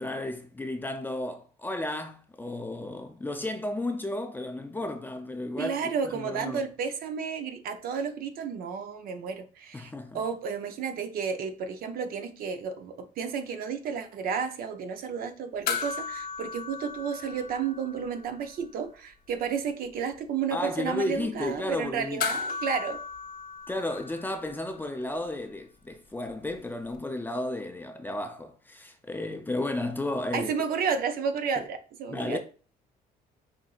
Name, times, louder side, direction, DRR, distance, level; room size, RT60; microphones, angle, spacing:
voice 1, 0.0-6.6 9.7-10.3 20.5-22.2 23.7-30.5 32.1-32.4, left 1 dB, 10° left, 0.5 m, -33 dB
voice 2, 5.6-23.0 30.3-32.4, right 6 dB, 60° right, 0.6 m, -32 dB
sound 1, 15.7-18.3 18.6-18.7 22.2-24.8 26.9-27.0, left 6 dB, 60° left, 0.8 m, -35 dB
5.8 x 2.7 x 2.4 m
cardioid pair, 110°, 17 cm